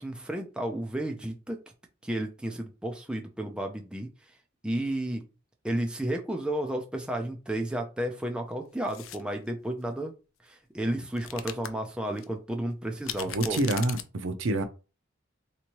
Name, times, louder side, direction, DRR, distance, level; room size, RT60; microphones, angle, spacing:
voice 1, 0.0-1.6 2.0-4.4 4.6-5.2 5.6-10.1 10.4-13.6, right 1 dB, 5° right, 0.4 m, -32 dB
sound 1, 8.8-9.2 11.1-11.7 12.2-12.3 13.0-14.0, left 11 dB, 70° left, 0.4 m, -37 dB
voice 2, 13.2-14.6, right 2 dB, 65° right, 0.6 m, -27 dB
3.5 x 2.9 x 3.0 m
head